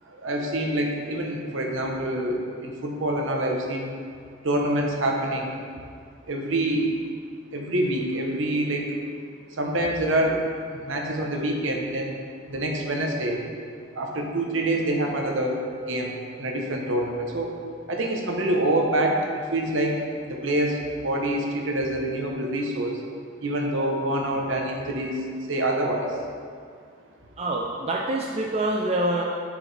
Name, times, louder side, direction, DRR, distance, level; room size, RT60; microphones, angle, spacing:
voice 1, 0.1-4.0 4.4-5.5 6.3-6.9 7.5-8.9 9.6-10.4 10.7-12.2 12.5-13.4 13.9-17.5 17.9-19.2 19.5-23.0 23.4-26.2, right 1 dB, 60° right, 1 dB, 0.9 m, -26 dB
voice 2, 27.4-29.2, right 1 dB, 30° right, -2 dB, 0.4 m, -26 dB
9.7 x 4.9 x 3.4 m, 2.2 s
head